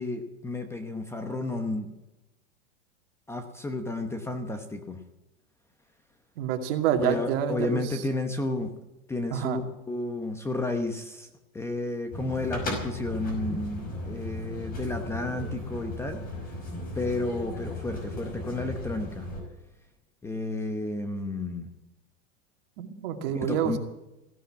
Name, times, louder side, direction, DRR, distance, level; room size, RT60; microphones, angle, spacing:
voice 1, 0.0-1.9 3.3-5.0 6.9-8.7 9.1-11.3 11.5-16.2 16.9-19.3 20.2-21.7 23.3-23.8, left 2 dB, 5° left, 7 dB, 0.9 m, -32 dB
voice 2, 6.4-8.0 9.3-9.6 22.8-23.8, right 9 dB, 50° right, 5 dB, 2.3 m, -28 dB
sound 1, 12.1-19.4, left 1 dB, 25° left, 5.4 m, -36 dB
16.0 x 11.5 x 7.5 m, 0.94 s
supercardioid pair, 155°, 36 cm